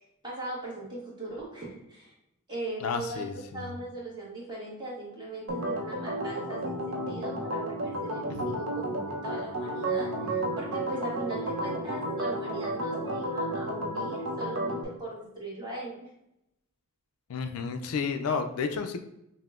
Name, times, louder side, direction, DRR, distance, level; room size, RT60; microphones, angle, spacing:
voice 1, 0.2-2.1 2.5-3.2 3.5-16.1, right 1 dB, 20° right, -6 dB, 1.1 m, -39 dB
voice 2, 2.8-3.8 8.3-8.6 17.3-19.0, left 5 dB, 80° left, 7 dB, 0.4 m, -32 dB
Organ, 5.5-14.8, right 1 dB, 70° right, 0.6 m, -32 dB
5.5 x 2.1 x 2.3 m, 0.84 s
head